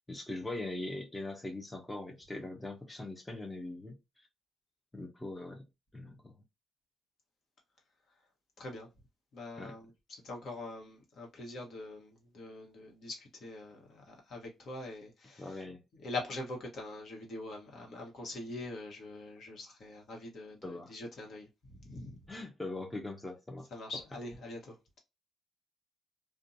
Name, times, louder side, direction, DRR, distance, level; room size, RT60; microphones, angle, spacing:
voice 1, 0.1-4.3 4.9-5.7 5.9-6.3 9.5-9.8 15.4-15.8 20.6-20.9 22.3-23.7, left 2 dB, 10° left, 0.6 m, -41 dB
voice 2, 8.6-8.9 9.3-15.6 16.0-21.5 21.8-22.2 23.7-25.0, left 2 dB, 60° left, 1.1 m, -43 dB
2.5 x 2.2 x 2.6 m
cardioid pair, 90°, 0 cm